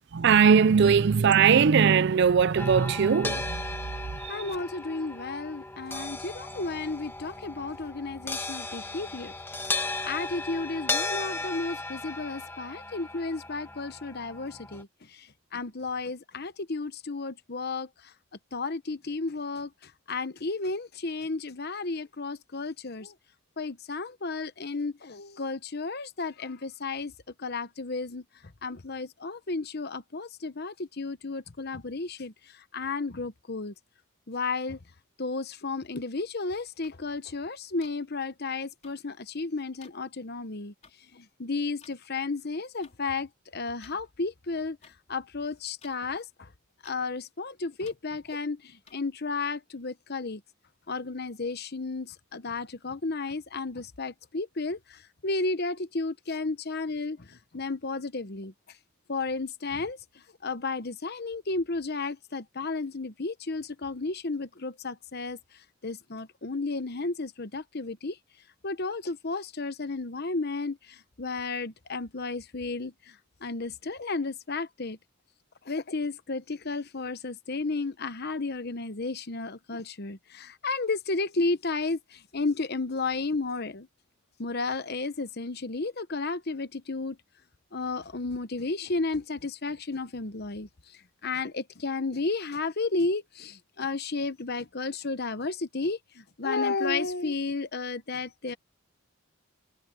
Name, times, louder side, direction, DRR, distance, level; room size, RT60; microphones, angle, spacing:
voice 1, 0.1-4.6, right 6 dB, 55° right, 0.4 m, -21 dB
sound 1, 2.6-14.8, left 3 dB, 10° left, 1.7 m, -36 dB
voice 2, 4.3-9.3 9.7-9.8 10.0-17.9 18.5-23.1 23.6-27.1 27.4-28.2 28.6-32.3 32.7-33.7 34.3-34.8 35.2-40.7 41.1-44.8 45.1-46.5 46.8-50.4 50.9-58.5 59.1-60.0 60.4-65.4 65.8-68.2 68.6-73.1 73.4-75.0 75.7-83.9 84.4-87.2 87.7-90.7 91.2-98.6, left 3 dB, 50° left, 1.0 m, -33 dB
sound 2, 36.8-36.9 37.8-37.9 38.8-38.9 39.8-39.9 40.8-40.9 41.8-42.0 42.8-42.9 43.8-44.0 44.8-44.9 45.8-46.0 46.8-47.0 47.8-48.0 48.9-49.0, left 6 dB, 35° left, 4.1 m, -54 dB
head